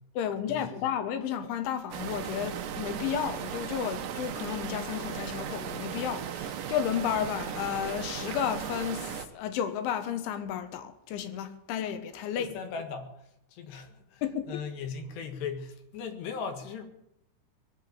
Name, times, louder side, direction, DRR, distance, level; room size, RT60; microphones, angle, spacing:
voice 1, 0.2-12.5 14.2-14.6, left 9 dB, 85° left, 3.6 m, -32 dB
sound 1, 1.9-9.3, right 9 dB, 70° right, 2.1 m, -37 dB
voice 2, 12.4-13.1 13.5-14.2 14.5-16.8, left 5 dB, 70° left, 3.8 m, -38 dB
20.5 x 7.9 x 8.6 m
omnidirectional pair, 5.3 m